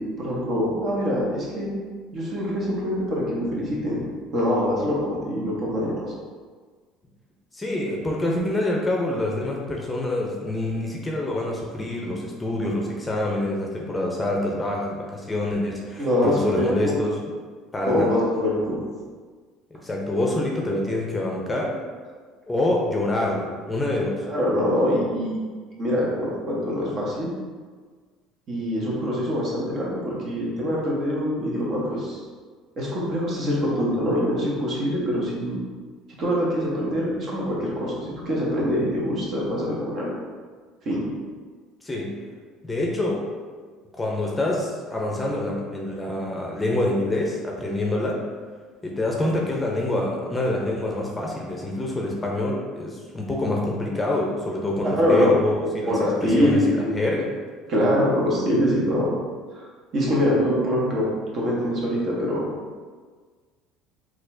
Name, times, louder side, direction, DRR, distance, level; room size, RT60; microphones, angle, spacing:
voice 1, 0.0-1.7 2.1-4.0 4.3-6.1 16.0-16.9 17.9-18.8 24.2-25.4 25.8-27.3 28.5-32.2 32.8-35.6 36.2-40.1 40.8-41.1 54.8-55.5 55.9-56.9 57.7-59.1 59.9-61.1 61.3-62.5, equal, 50° right, -5 dB, 1.1 m, -24 dB
voice 2, 7.5-17.2 17.7-18.1 19.7-21.8 22.5-24.2 41.8-42.1 42.6-43.3 44.0-48.2 48.8-57.3, left 1 dB, 15° left, -2 dB, 0.6 m, -26 dB
4.0 x 2.4 x 2.7 m, 1.5 s
supercardioid pair, 85°, 0 cm